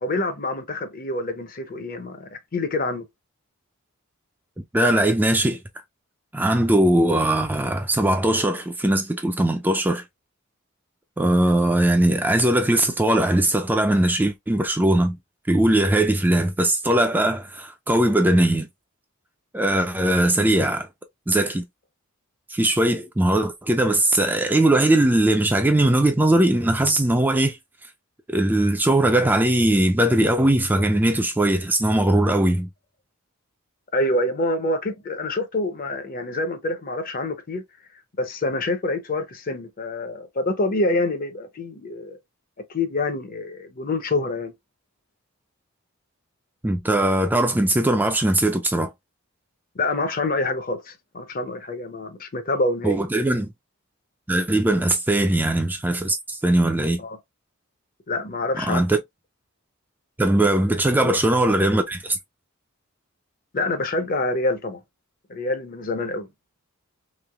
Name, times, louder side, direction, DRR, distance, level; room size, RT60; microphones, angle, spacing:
voice 1, 0.0-3.0 33.9-37.6 38.2-42.2 42.7-44.5 49.7-53.0 57.0-57.2 58.1-58.8 61.0-61.1 63.5-64.8 65.3-66.3, left 2 dB, 40° left, 0.6 m, -26 dB
voice 2, 4.6-5.6 6.3-10.0 11.2-15.2 15.5-18.7 19.5-20.9 21.3-21.6 22.5-27.6 28.3-32.7 46.6-48.9 52.8-53.5 54.3-57.0 58.6-59.0 60.2-62.2, right 1 dB, 10° right, 0.3 m, -20 dB
3.2 x 2.9 x 2.3 m
head